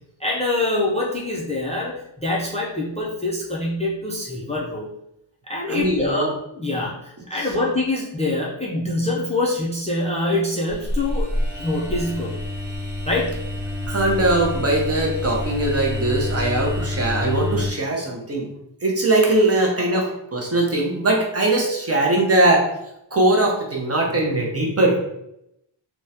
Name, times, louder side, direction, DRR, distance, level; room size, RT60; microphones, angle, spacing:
voice 1, 0.2-4.9 5.5-12.4 13.0-13.4, left 2 dB, 15° left, -3 dB, 0.4 m, -25 dB
voice 2, 5.7-6.3 7.3-7.5 13.9-18.5 18.8-22.7 23.1-25.0, right 2 dB, 35° right, -1 dB, 0.5 m, -20 dB
sound 1, 10.7-17.7, left 1 dB, 5° right, 0.9 m, -27 dB
3.4 x 2.1 x 2.7 m, 0.81 s
wide cardioid pair, 145°, 46 cm